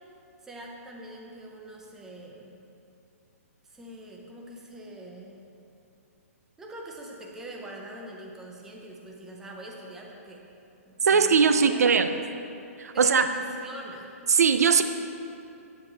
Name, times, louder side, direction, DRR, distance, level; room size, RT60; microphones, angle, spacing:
voice 1, 0.4-2.6 3.6-5.4 6.6-10.5 10.9-12.2 12.9-14.1, right 1 dB, 5° right, -1 dB, 0.6 m, -43 dB
voice 2, 11.0-12.1 12.8-13.3 14.3-14.8, right 6 dB, 85° right, 9 dB, 0.6 m, -20 dB
8.6 x 8.2 x 4.2 m, 2.7 s
hypercardioid pair, 165°, 8 cm